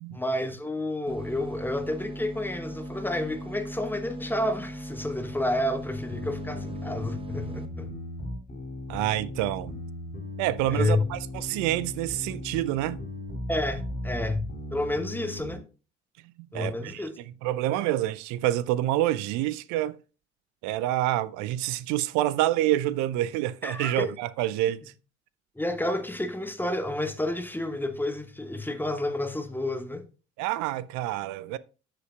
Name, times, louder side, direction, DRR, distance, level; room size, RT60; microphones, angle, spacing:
voice 1, 0.1-7.9 10.7-11.0 13.5-15.6 16.5-17.1 23.6-24.1 25.5-30.0, left 1 dB, 5° left, 1.2 m, -30 dB
sound 1, 1.1-7.7, equal, 15° right, 1.1 m, -39 dB
sound 2, 6.1-15.6, left 1 dB, 30° left, 4.0 m, -37 dB
voice 2, 8.9-9.8 10.4-13.0 16.5-17.0 17.4-20.0 20.6-24.8 30.4-31.6, right 14 dB, 55° right, 0.5 m, -27 dB
13.0 x 6.8 x 2.4 m
figure-of-eight pair, 45°, 33 cm